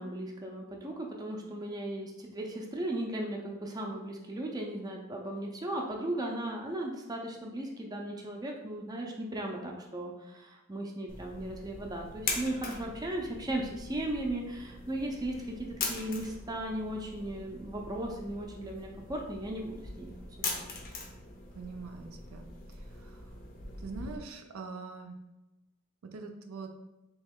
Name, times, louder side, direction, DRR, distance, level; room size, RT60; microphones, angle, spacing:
voice 1, 0.0-20.1 20.5-20.7, right 1 dB, 20° right, 0 dB, 0.5 m, -36 dB
sound 1, 11.1-24.2, left 3 dB, 40° left, 0.6 m, -41 dB
voice 2, 21.5-22.5 23.0-23.2 23.8-25.2 26.0-26.7, right 4 dB, 75° right, 4 dB, 0.5 m, -43 dB
3.2 x 3.0 x 3.5 m, 1.0 s
head